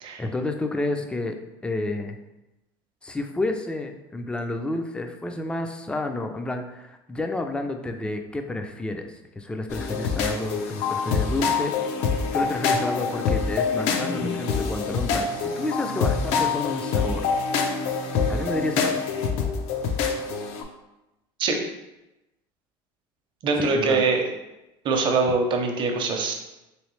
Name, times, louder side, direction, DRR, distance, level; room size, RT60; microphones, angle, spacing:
voice 1, 0.2-1.4 1.6-2.2 3.0-11.9 12.3-17.3 18.3-19.0 23.6-24.1, left 2 dB, 10° left, 5 dB, 0.3 m, -30 dB
sound 1, 9.7-20.6, left 5 dB, 70° left, 0.5 m, -25 dB
voice 2, 23.4-24.2 24.8-26.3, right 4 dB, 45° right, 3 dB, 0.7 m, -23 dB
3.2 x 3.1 x 3.1 m, 0.96 s
supercardioid pair, 115°, 12 cm